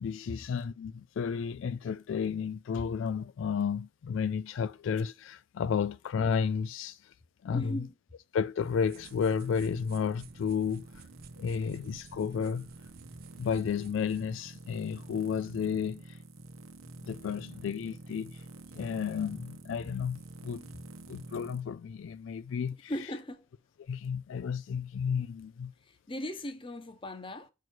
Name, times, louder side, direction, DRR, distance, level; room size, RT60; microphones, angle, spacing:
voice 1, 0.0-7.1 7.4-7.8 8.3-11.0 11.4-12.7 13.4-16.2 17.0-18.4 18.7-20.7 21.1-22.9 23.8-25.7, left 6 dB, 70° left, 0.3 m, -32 dB
voice 2, 7.5-7.9 22.9-23.5 25.8-27.5, left 1 dB, 25° left, 0.9 m, -38 dB
sound 1, 8.6-21.6, right 2 dB, 90° right, 1.0 m, -49 dB
sound 2, 8.9-14.4, right 5 dB, 45° right, 0.5 m, -54 dB
6.1 x 4.7 x 4.5 m
head